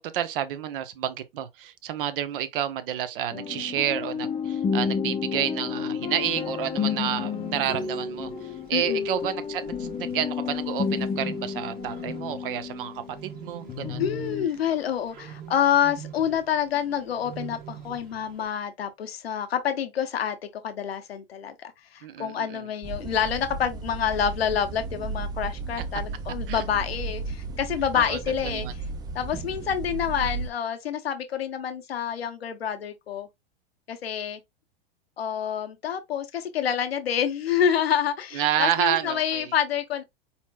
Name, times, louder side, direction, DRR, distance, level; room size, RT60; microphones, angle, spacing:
voice 1, 0.0-8.3 8.7-12.9 13.2-14.0 22.0-22.7 26.5-26.6 27.9-28.2 28.5-28.7 38.3-39.5, right 11 dB, 60° right, 0.9 m, -29 dB
sound 1, 3.3-13.4 13.7-14.5, left 6 dB, 20° left, 0.7 m, -31 dB
Bird, 6.3-18.5, right 8 dB, 30° right, 1.4 m, -45 dB
voice 2, 8.7-9.1 14.0-20.4 20.6-28.7 29.1-33.3 33.9-34.4 35.2-40.0, left 8 dB, 80° left, 0.9 m, -27 dB
sound 2, 22.8-30.5, right 4 dB, 15° right, 0.3 m, -34 dB
4.3 x 4.3 x 2.3 m
hypercardioid pair, 105°, 30 cm